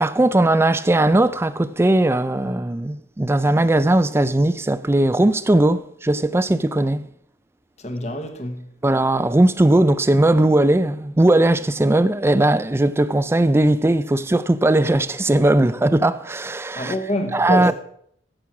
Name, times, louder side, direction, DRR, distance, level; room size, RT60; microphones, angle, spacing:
voice 1, 0.0-7.1 8.8-16.9 17.3-17.7, right 1 dB, 15° right, 0.4 m, -18 dB
voice 2, 7.8-8.7 16.8-17.7, left 1 dB, 40° left, 1.2 m, -27 dB
15.5 x 6.2 x 6.0 m
head